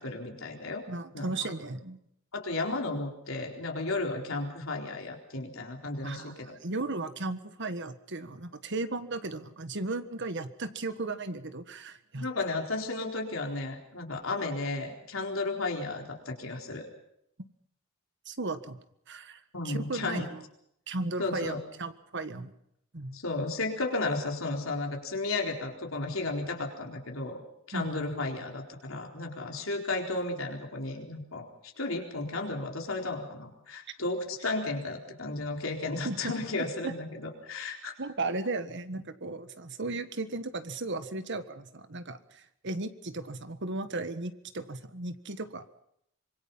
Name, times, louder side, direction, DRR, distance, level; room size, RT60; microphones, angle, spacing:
voice 1, 0.0-0.8 1.1-1.5 2.3-6.6 12.2-16.9 19.5-20.3 21.2-21.6 23.1-27.4 27.7-31.5 31.8-37.9, left 2 dB, 70° left, 1 dB, 4.2 m, -33 dB
voice 2, 0.9-2.0 6.0-12.3 18.3-18.8 19.1-20.4 20.9-22.5 22.9-23.2 27.7-28.0 36.0-36.3 36.8-36.9 38.0-45.8, right 2 dB, 60° right, 11 dB, 1.6 m, -36 dB
25.5 x 23.0 x 5.7 m, 0.74 s
head